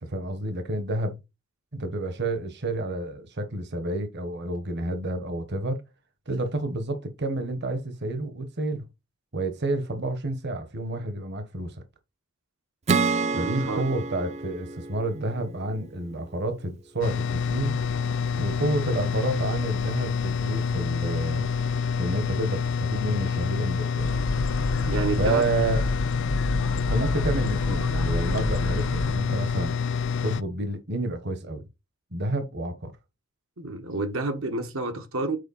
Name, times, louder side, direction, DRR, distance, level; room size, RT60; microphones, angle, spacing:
voice 1, 0.0-1.2 1.7-5.8 6.3-8.9 9.3-11.7 13.4-17.7 18.3-21.5 22.0-24.1 25.2-25.8 26.9-29.8 30.2-31.6 32.1-32.9, right 2 dB, 55° right, 1.3 m, -29 dB
Acoustic guitar / Strum, 12.9-16.3, right 4 dB, 35° right, 0.5 m, -29 dB
voice 2, 13.3-13.8 24.7-25.5 33.6-35.4, right 3 dB, 75° right, 1.3 m, -29 dB
sound 1, 17.0-30.4, left 6 dB, 65° left, 0.4 m, -27 dB
sound 2, 24.0-29.2, left 1 dB, 90° left, 1.2 m, -29 dB
8.2 x 4.4 x 4.2 m
head